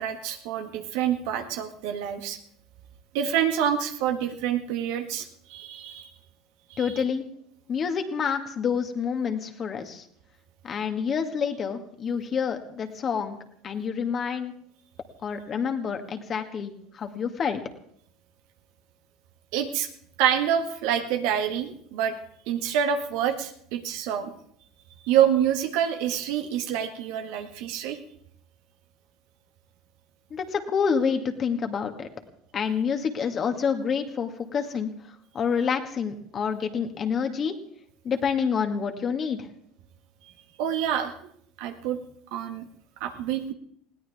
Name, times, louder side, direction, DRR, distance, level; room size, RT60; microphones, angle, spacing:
voice 1, 0.0-2.4 3.1-6.1 6.7-6.9 19.5-19.9 20.2-22.2 22.5-24.3 25.0-28.0 40.6-41.1 41.6-42.0 42.3-42.6 43.0-43.5, right 9 dB, 70° right, 6 dB, 1.7 m, -27 dB
voice 2, 6.8-7.3 7.7-10.0 10.6-13.4 13.6-14.5 15.2-17.6 30.3-32.1 32.5-37.6 38.0-39.5, left 6 dB, 40° left, 6 dB, 2.1 m, -28 dB
20.5 x 17.0 x 3.6 m, 0.65 s
hypercardioid pair, 80°, 0 cm